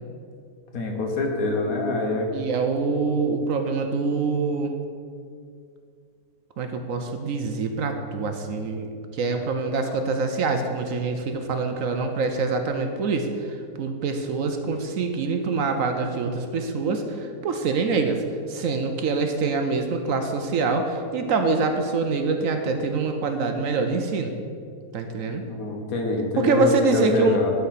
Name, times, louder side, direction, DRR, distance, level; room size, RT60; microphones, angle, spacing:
voice 1, 0.7-2.3 25.5-27.5, left 3 dB, 65° left, 2 dB, 1.5 m, -25 dB
voice 2, 2.3-4.7 6.6-18.2 18.5-24.3 24.9-25.4 26.4-27.4, right 4 dB, 65° right, 5 dB, 1.0 m, -25 dB
11.5 x 4.4 x 5.7 m, 2.3 s
omnidirectional pair, 1.7 m